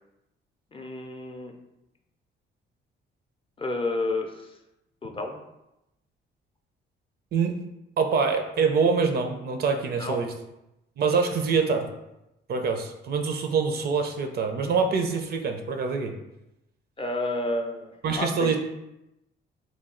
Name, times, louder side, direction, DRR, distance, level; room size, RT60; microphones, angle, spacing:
voice 1, 0.7-1.5 3.6-4.5 5.0-5.4 10.0-10.2 17.0-18.6, left 2 dB, 25° left, 3 dB, 0.5 m, -30 dB
voice 2, 7.3-7.6 8.0-10.3 11.0-11.9 12.5-16.1 18.0-18.6, right 5 dB, 55° right, 5 dB, 0.5 m, -25 dB
3.1 x 2.3 x 3.7 m, 0.90 s
cardioid pair, 90°, 20 cm